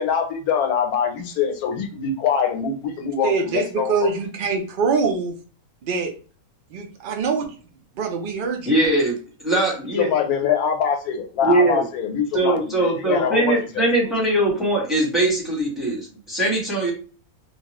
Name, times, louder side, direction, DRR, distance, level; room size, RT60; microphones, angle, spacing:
voice 1, 0.0-4.1 10.0-14.1 14.5-14.7, left 7 dB, 85° left, 5 dB, 1.1 m, -24 dB
voice 2, 3.2-5.3 5.8-6.1 6.7-7.5 8.0-8.8, right 4 dB, 65° right, 3 dB, 0.5 m, -24 dB
voice 3, 8.6-10.1 11.4-11.9 12.3-16.9, right 1 dB, ahead, -4 dB, 1.0 m, -21 dB
2.9 x 2.3 x 2.9 m, 0.38 s
omnidirectional pair, 1.5 m